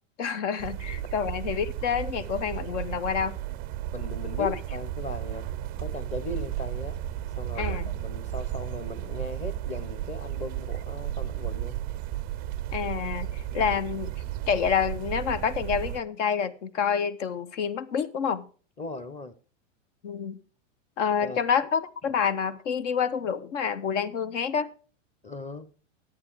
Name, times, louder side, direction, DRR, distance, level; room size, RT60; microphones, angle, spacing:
voice 1, 0.2-3.4 4.4-4.5 7.6-7.9 12.7-14.1 14.5-18.5 20.0-20.4 21.0-24.7, left 7 dB, 65° left, 1.1 m, -28 dB
sound 1, 0.6-16.0, right 13 dB, 25° right, 0.4 m, -34 dB
voice 2, 3.9-5.5 5.8-7.0 7.4-11.8 13.5-13.7 18.8-19.4 21.2-21.4 25.2-25.7, left 2 dB, 15° left, 0.9 m, -38 dB
11.5 x 8.6 x 4.7 m
hypercardioid pair, 130°, 39 cm